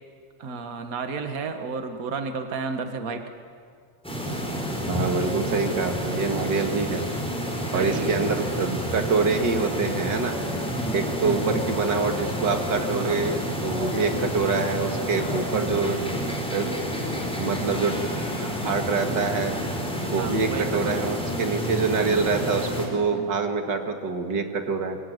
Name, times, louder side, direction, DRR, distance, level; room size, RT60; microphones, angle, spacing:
voice 1, 0.4-3.2 7.7-8.2 10.7-11.0 11.2-11.6 12.8-13.2 15.4-15.6 20.1-21.0 23.1-23.3, right 4 dB, 85° right, 6 dB, 0.7 m, -32 dB
sound 1, 4.0-22.9, equal, ahead, 4.7 m, -29 dB
voice 2, 4.9-7.1 7.7-10.3 10.9-16.0 16.5-16.7 17.4-17.9 18.3-19.5 20.1-25.0, right 4 dB, 40° right, 5 dB, 2.0 m, -26 dB
26.0 x 23.0 x 9.6 m, 2.2 s
omnidirectional pair, 4.0 m